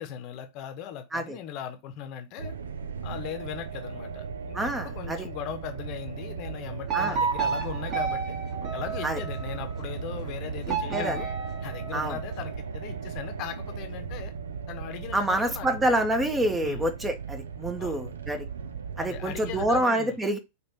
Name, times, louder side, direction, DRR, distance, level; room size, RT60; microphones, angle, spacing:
voice 1, 0.0-2.5 3.0-8.4 8.7-11.3 11.6-14.3 14.7-15.9 16.6-16.9 17.8-18.0 19.0-20.2, left 9 dB, 40° left, 1.0 m, -39 dB
sound 1, 2.4-19.8, right 6 dB, 70° right, 0.5 m, -37 dB
voice 2, 4.5-5.3 6.9-7.2 9.0-9.2 10.7-11.2 11.9-12.2 15.1-18.5 19.0-20.4, right 1 dB, 10° right, 0.9 m, -27 dB
sound 2, 6.9-9.6 10.7-12.4, right 5 dB, 40° right, 1.9 m, -31 dB
5.4 x 3.4 x 2.9 m
figure-of-eight pair, 90°, 0 cm